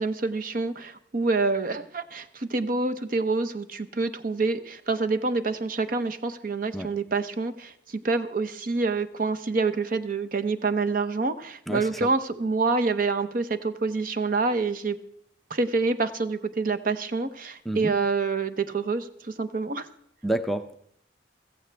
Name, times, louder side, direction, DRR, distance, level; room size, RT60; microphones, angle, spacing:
voice 1, 0.0-7.7 8.0-15.0 15.5-19.9, right 3 dB, 50° right, 9 dB, 0.7 m, -27 dB
voice 2, 11.7-12.1 17.7-18.0 20.2-20.7, right 1 dB, ahead, 7 dB, 0.5 m, -29 dB
16.0 x 14.5 x 3.3 m, 0.68 s
head